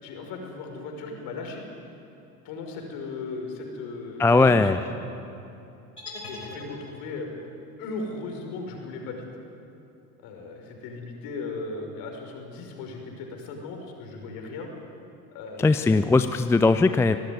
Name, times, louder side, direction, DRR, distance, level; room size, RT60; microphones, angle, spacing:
voice 1, 0.0-1.6 2.4-4.6 6.3-7.3 7.8-9.3 10.2-14.7 15.3-16.2, left 3 dB, 50° left, 3 dB, 5.6 m, -37 dB
voice 2, 4.2-4.8 15.6-17.2, left 3 dB, 5° left, 10 dB, 0.5 m, -19 dB
sound 1, 6.0-7.3, left 2 dB, 80° left, 5.2 m, -40 dB
25.0 x 18.0 x 9.7 m, 2.8 s
figure-of-eight pair, 75°, 45 cm